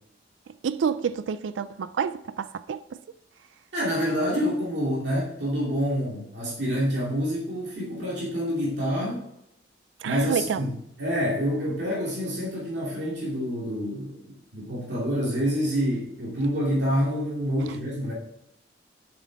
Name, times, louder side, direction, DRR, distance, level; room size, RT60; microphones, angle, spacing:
voice 1, 0.6-2.8 10.0-10.6, right 7 dB, 80° right, 0.4 m, -28 dB
voice 2, 3.7-9.2 10.0-10.7 11.0-18.1, equal, 65° right, 2.6 m, -27 dB
8.0 x 6.2 x 4.6 m
head